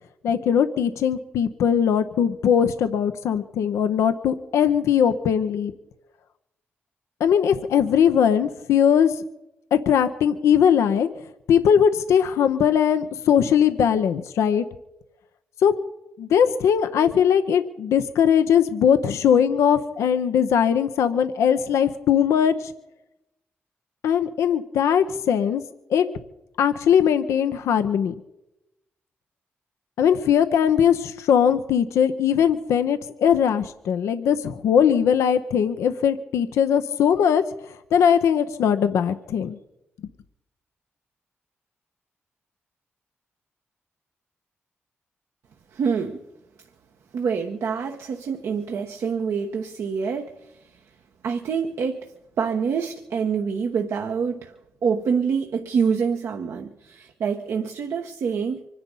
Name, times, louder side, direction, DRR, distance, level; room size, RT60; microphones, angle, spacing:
voice 1, 0.2-5.7 7.2-9.1 9.7-11.1 11.5-14.6 15.6-15.7 16.2-22.7 24.0-25.6 25.9-26.1 26.6-28.1 30.0-37.4 37.7-39.6, left 8 dB, 90° left, 0.7 m, -20 dB
voice 2, 45.7-46.2 47.1-50.8 51.2-54.5 54.8-58.7, right 6 dB, 80° right, 1.1 m, -26 dB
24.5 x 10.5 x 5.4 m
supercardioid pair, 50°, 5 cm